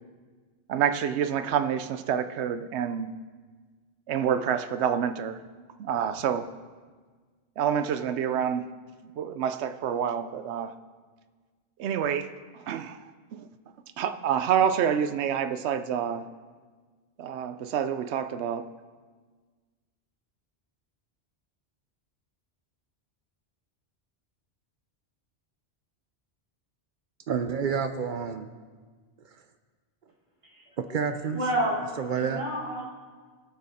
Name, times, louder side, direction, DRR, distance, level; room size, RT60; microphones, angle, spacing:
voice 1, 0.7-3.1 4.1-5.4 5.8-6.5 7.6-8.6 9.2-10.7 11.8-12.3 12.5-13.0 13.3-13.5 14.0-16.3 17.2-18.7, right 8 dB, 90° right, 10 dB, 0.9 m, -27 dB
voice 2, 27.3-28.5 30.8-31.4 32.0-32.4, right 6 dB, 55° right, 8 dB, 0.7 m, -29 dB
voice 3, 31.3-31.8 32.1-32.9, right 1 dB, 30° right, -5 dB, 2.4 m, -29 dB
17.5 x 6.4 x 4.2 m, 1.5 s
omnidirectional pair, 1.1 m